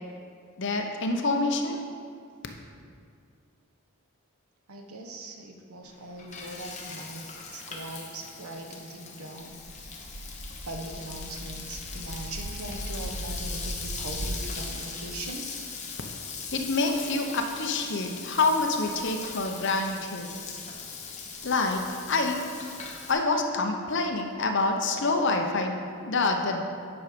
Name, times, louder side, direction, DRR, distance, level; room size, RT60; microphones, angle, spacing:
voice 1, 0.6-1.8 16.5-20.3 21.4-22.4 23.1-25.7 26.0-26.6, left 3 dB, 55° left, 4 dB, 0.8 m, -27 dB
voice 2, 4.7-7.3 7.5-9.9 10.6-15.5, right 2 dB, 80° right, 3 dB, 1.0 m, -40 dB
Frying (food), 5.8-23.1, left 5 dB, 30° left, 1.1 m, -40 dB
sound 1, 9.5-14.4, right 1 dB, 30° right, 0.6 m, -38 dB
9.6 x 6.1 x 5.1 m, 2.3 s
head